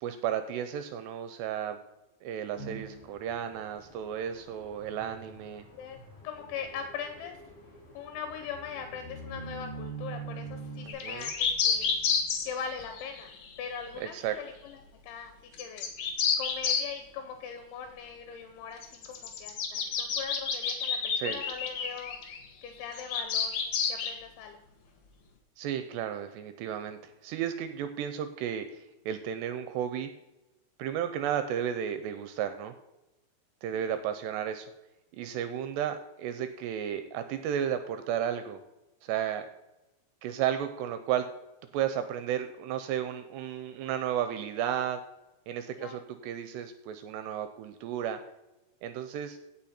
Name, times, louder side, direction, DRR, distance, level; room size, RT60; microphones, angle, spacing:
voice 1, 0.0-1.8 2.2-5.6 10.9-11.3 14.0-14.4 21.2-21.4 25.6-30.1 30.8-32.7 33.6-34.7 35.2-38.6 39.0-39.5 40.2-41.3 41.7-45.0 45.5-48.2 48.8-49.4, right 9 dB, 80° right, 9 dB, 2.6 m, -33 dB
sound 1, 2.6-10.9, right 4 dB, 20° left, 4.3 m, -45 dB
voice 2, 6.2-7.4 7.9-11.9 12.4-15.9 16.4-22.2 22.6-23.6 23.9-24.6 33.8-34.0 45.8-46.0, left 7 dB, 85° left, 6 dB, 3.4 m, -41 dB
sound 2, 10.9-13.8 15.5-16.9 18.8-22.4 22.9-24.1, left 6 dB, 65° left, 2.0 m, -29 dB
16.5 x 5.9 x 4.3 m, 0.98 s
omnidirectional pair, 5.2 m